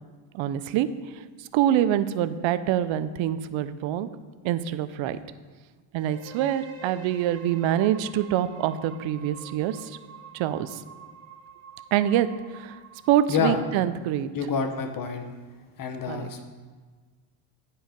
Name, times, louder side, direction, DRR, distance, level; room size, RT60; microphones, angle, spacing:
voice 1, 0.3-0.9 1.4-4.1 4.4-5.2 5.9-10.0 10.3-10.8 11.9-12.8 13.1-14.3 16.1-16.3, right 11 dB, 70° right, 13 dB, 0.6 m, -25 dB
sound 1, 6.0-13.8, right 5 dB, 30° right, 0.9 m, -47 dB
voice 2, 13.3-13.6 14.3-15.3 15.8-16.4, left 5 dB, 45° left, 6 dB, 1.0 m, -27 dB
9.1 x 4.7 x 5.1 m, 1.4 s
cardioid pair, 100°, 48 cm